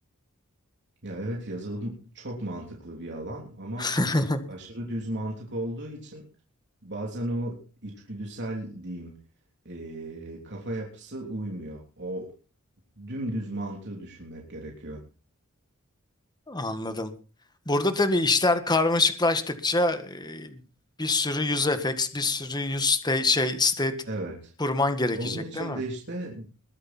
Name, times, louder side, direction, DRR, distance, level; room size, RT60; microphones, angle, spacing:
voice 1, 1.0-4.0 4.5-6.2 6.8-9.1 9.6-12.3 13.0-15.0 24.1-24.5 25.2-26.5, right 1 dB, 55° right, -1 dB, 3.4 m, -35 dB
voice 2, 3.8-4.4 16.5-17.1 17.6-20.6 21.0-23.9 24.6-25.8, left 2 dB, 20° left, 9 dB, 1.7 m, -25 dB
21.5 x 10.0 x 4.4 m, 0.36 s
head